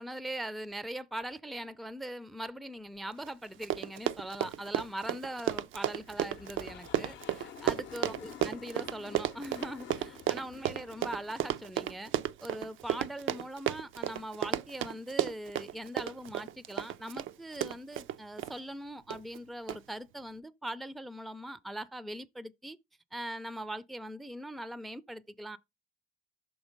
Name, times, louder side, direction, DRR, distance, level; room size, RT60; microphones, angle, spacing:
voice 1, 0.0-12.1 12.4-22.8 23.1-25.6, right 1 dB, ahead, 0.4 m, -41 dB
Run, 3.3-3.4 3.5-18.5 19.1-19.4 19.7-19.8, right 12 dB, 75° right, 0.4 m, -33 dB
sound 1, 5.9-12.3, left 9 dB, 70° left, 0.6 m, -50 dB
6.2 x 3.6 x 5.1 m
cardioid pair, 90°, 20 cm